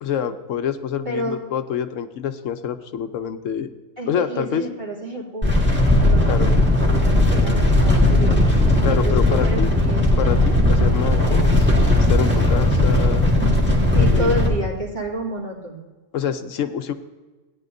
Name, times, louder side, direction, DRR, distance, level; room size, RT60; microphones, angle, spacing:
voice 1, 0.0-3.7 4.1-4.6 6.3-6.5 8.8-9.7 10.2-11.7 11.9-13.3 14.1-14.3 16.1-16.9, left 8 dB, 80° left, 9 dB, 1.0 m, -26 dB
voice 2, 1.0-1.4 4.0-5.7 6.0-8.4 8.9-10.3 13.9-15.8, right 1 dB, 35° right, -5 dB, 2.6 m, -29 dB
sound 1, 5.4-14.5, left 1 dB, 10° right, 1.8 m, -17 dB
16.5 x 9.9 x 2.6 m, 1.3 s
omnidirectional pair, 1.3 m